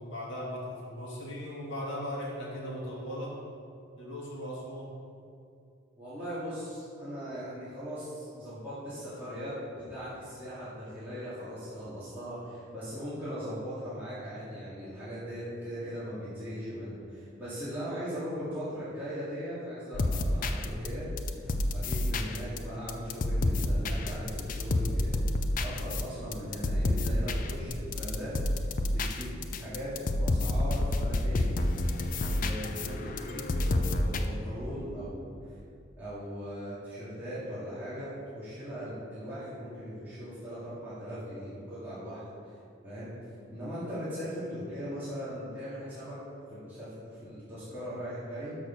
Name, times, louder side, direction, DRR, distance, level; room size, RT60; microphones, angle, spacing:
voice 1, 0.0-3.3 4.0-4.9, equal, 65° left, -5 dB, 2.2 m, -38 dB
voice 2, 6.0-9.6 9.9-25.3 25.6-28.3 28.9-29.3 29.6-31.5 32.3-35.3 36.0-42.2 42.8-43.1 43.5-46.2 46.5-48.6, equal, 10° right, -14 dB, 2.1 m, -39 dB
sound 1, 19.9-34.2, left 1 dB, 40° left, 0.4 m, -29 dB
6.5 x 6.3 x 5.9 m, 2.5 s
head